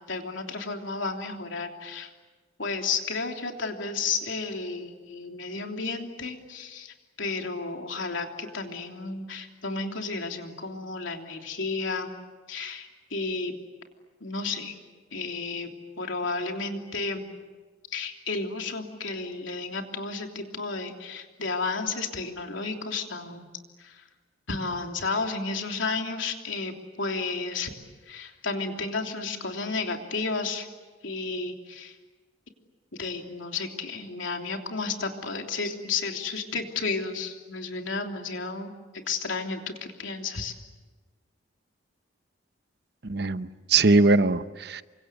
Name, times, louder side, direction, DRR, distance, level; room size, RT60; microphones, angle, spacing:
voice 1, 0.1-2.1 2.6-12.1 12.5-13.5 14.2-14.7 15.1-15.7 16.0-17.3 17.9-23.5 23.8-24.0 24.5-27.7 28.1-30.7 31.0-32.0 33.0-38.7 39.1-40.5, left 4 dB, 80° left, 3 dB, 3.2 m, -32 dB
voice 2, 43.0-44.8, right 3 dB, 55° right, 13 dB, 0.8 m, -21 dB
28.5 x 25.0 x 8.1 m, 1.3 s
head